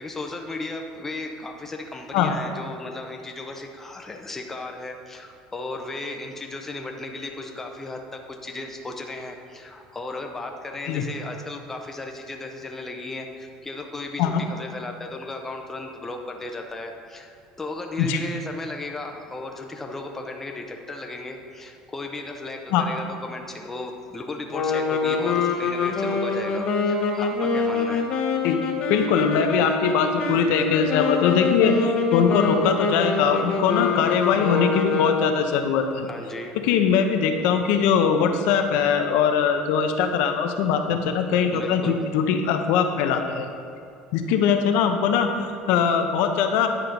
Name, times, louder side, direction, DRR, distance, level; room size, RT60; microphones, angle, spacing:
voice 1, 0.0-28.1 36.0-36.6 41.5-42.0, left 2 dB, 15° left, 3 dB, 0.7 m, -35 dB
sound 1, 24.5-35.5, left 4 dB, 40° left, 1.0 m, -25 dB
voice 2, 28.9-36.1 36.6-43.5 44.1-46.7, left 7 dB, 75° left, 6 dB, 0.7 m, -21 dB
9.9 x 4.5 x 5.1 m, 2.5 s
cardioid pair, 145°, 2 cm